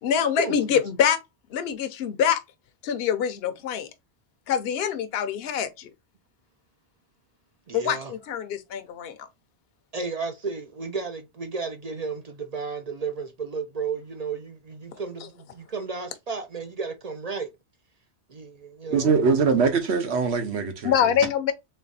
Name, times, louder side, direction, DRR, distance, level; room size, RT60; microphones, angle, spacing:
voice 1, 0.0-1.2 1.5-2.4 2.8-3.9 4.5-5.9 7.7-9.3 14.9-15.0 20.8-21.5, left 8 dB, 65° left, 0.9 m, -25 dB
voice 2, 7.7-8.1 9.9-17.6 18.3-19.3, right 4 dB, 50° right, 0.5 m, -33 dB
voice 3, 18.9-20.9, right 5 dB, 75° right, 1.2 m, -22 dB
3.5 x 3.3 x 4.0 m
omnidirectional pair, 1.1 m